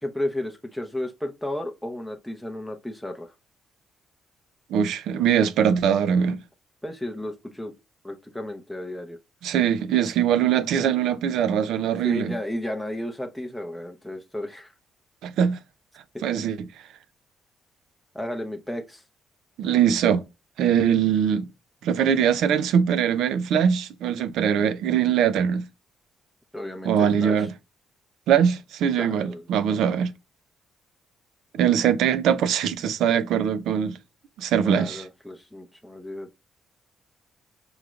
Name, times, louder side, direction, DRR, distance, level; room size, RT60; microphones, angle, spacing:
voice 1, 0.0-3.3 6.8-7.7 8.0-9.2 12.0-14.7 16.1-16.2 18.1-19.0 26.5-27.5 29.0-29.5 34.6-36.4, left 1 dB, ahead, 0.6 m, -33 dB
voice 2, 4.7-6.4 9.4-12.3 15.2-15.6 16.2-16.6 19.6-20.2 20.6-21.5 21.8-25.6 26.8-27.5 28.3-30.1 31.5-34.0 34.4-35.0, right 8 dB, 80° right, 0.5 m, -22 dB
4.8 x 3.1 x 2.4 m
cardioid pair, 90°, 0 cm